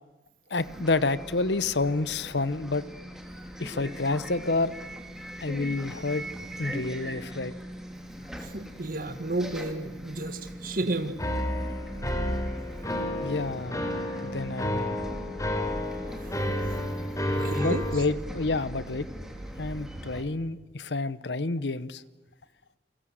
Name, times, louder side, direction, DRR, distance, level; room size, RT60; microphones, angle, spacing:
voice 1, 0.5-2.9 3.6-4.8 5.4-6.2 6.6-7.5 13.2-15.0 17.2-19.1 19.6-22.0, left 3 dB, 80° left, 16 dB, 1.0 m, -29 dB
Bus, 0.6-20.2, equal, 5° right, 3.1 m, -40 dB
voice 2, 8.4-11.2 16.2-16.3 17.3-17.9, right 2 dB, 55° right, 8 dB, 1.8 m, -32 dB
sound 1, 11.2-18.0, left 1 dB, 20° left, 3.5 m, -31 dB
29.0 x 23.0 x 7.8 m, 1.1 s
head